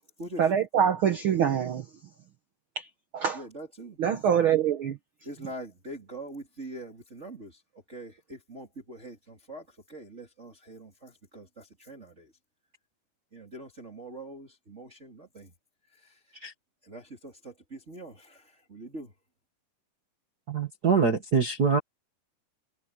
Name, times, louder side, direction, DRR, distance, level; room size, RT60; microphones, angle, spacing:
voice 1, 0.4-1.9 2.8-2.9 3.1-3.4 4.0-5.0, right 8 dB, 80° right, 1.1 m, -24 dB
voice 2, 3.3-4.0 5.2-7.6 7.9-12.3 13.3-15.5 15.9-16.4 16.8-19.1, right 1 dB, 20° right, 3.2 m, -43 dB
voice 3, 20.5-21.8, right 5 dB, 45° right, 1.3 m, -24 dB
omnidirectional pair, 3.9 m